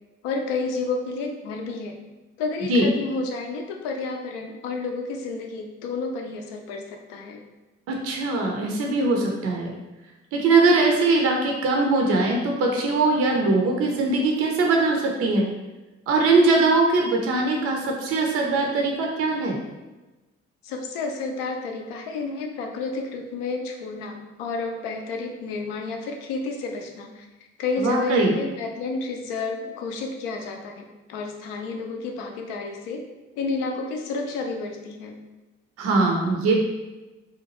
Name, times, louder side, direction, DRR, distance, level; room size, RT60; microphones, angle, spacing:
voice 1, 0.2-2.0 2.4-7.4 20.6-27.3 27.6-33.0 33.4-35.2, left 3 dB, 65° left, 3 dB, 0.5 m, -30 dB
voice 2, 7.9-9.7 10.3-15.5 16.1-19.6 27.8-28.3 35.8-36.5, right 3 dB, 45° right, 1 dB, 0.5 m, -21 dB
2.7 x 2.2 x 2.9 m, 1.1 s
figure-of-eight pair, 45°, 35 cm